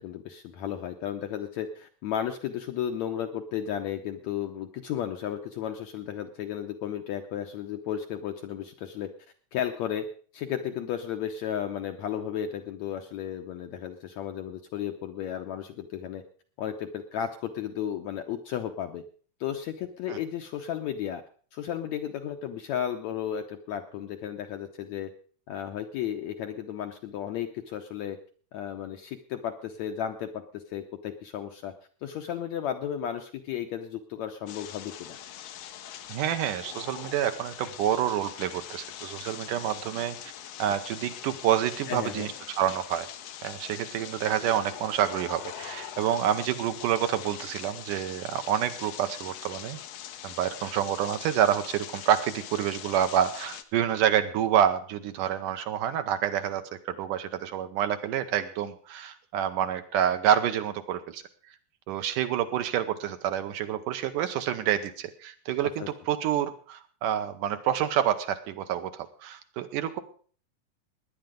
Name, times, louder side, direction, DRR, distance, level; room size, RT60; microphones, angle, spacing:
voice 1, 0.0-9.1 9.5-10.1 10.3-16.2 16.6-19.0 19.4-21.2 21.5-25.1 25.5-28.2 28.5-31.7 32.0-35.2 41.9-42.3 65.6-65.9, left 9 dB, 70° left, 6 dB, 1.7 m, -34 dB
sound 1, 34.5-53.6, left 11 dB, 85° left, 1.4 m, -42 dB
voice 2, 36.1-40.2 40.6-43.1 43.4-49.8 50.2-61.2 61.9-70.0, right 10 dB, 75° right, 9 dB, 2.3 m, -28 dB
17.5 x 10.5 x 5.2 m, 0.44 s
omnidirectional pair, 4.1 m